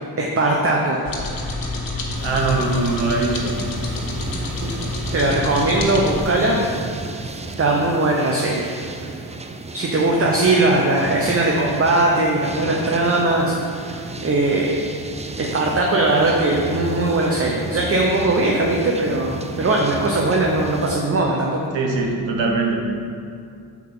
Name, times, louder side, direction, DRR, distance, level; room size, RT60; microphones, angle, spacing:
voice 1, 0.2-1.0 4.6-4.7 5.1-6.6 7.6-8.7 9.0-9.1 9.7-13.5 13.8-13.9 14.2-14.8 15.4-21.6, right 2 dB, 30° right, -1 dB, 0.8 m, -19 dB
sound 1, 1.0-6.2, left 2 dB, 50° left, 1.3 m, -28 dB
sound 2, 2.2-21.0, right 3 dB, 15° right, 0.4 m, -33 dB
voice 2, 2.2-3.5 21.7-22.9, right 3 dB, 80° right, 0 dB, 1.2 m, -21 dB
6.1 x 4.5 x 5.6 m, 2.4 s
cardioid pair, 65°, 43 cm